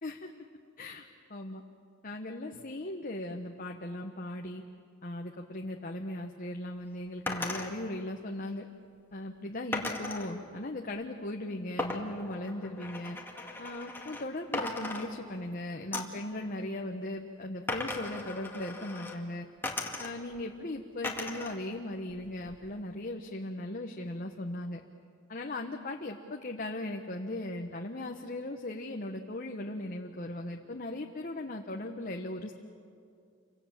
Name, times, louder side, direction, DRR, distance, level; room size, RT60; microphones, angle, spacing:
voice 1, 0.8-1.6 2.0-4.6 5.0-8.6 9.1-13.2 13.6-19.5 20.0-24.8 25.3-32.5, left 1 dB, 40° left, 2 dB, 1.2 m, -38 dB
sound 1, 7.3-7.7 9.7-10.3 11.8-14.3 14.5-15.5 15.9-16.2 17.7-19.2 19.6-20.4 21.0-21.6 21.9-22.7, left 2 dB, 10° left, 2.0 m, -37 dB
29.5 x 25.0 x 7.5 m, 2.4 s
head